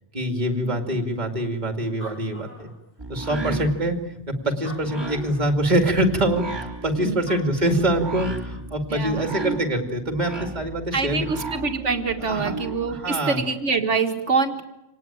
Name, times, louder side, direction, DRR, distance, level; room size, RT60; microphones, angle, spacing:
voice 1, 0.1-2.7 3.1-11.3 12.3-12.5 12.9-13.4, right 1 dB, 35° right, 5 dB, 2.7 m, -24 dB
voice 2, 0.6-1.0 3.3-3.7 7.0-7.2 8.9-9.4 10.9-14.6, right 4 dB, 75° right, 6 dB, 2.3 m, -25 dB
Animal, 1.6-1.7 1.8-3.3 3.9-4.0 4.5-5.5 7.0-7.1 7.3-8.2, left 1 dB, 75° left, 6.7 m, -44 dB
sound 1, 3.0-13.0, right 3 dB, 20° right, 3.9 m, -35 dB
26.5 x 19.0 x 9.0 m, 0.92 s
omnidirectional pair, 1.2 m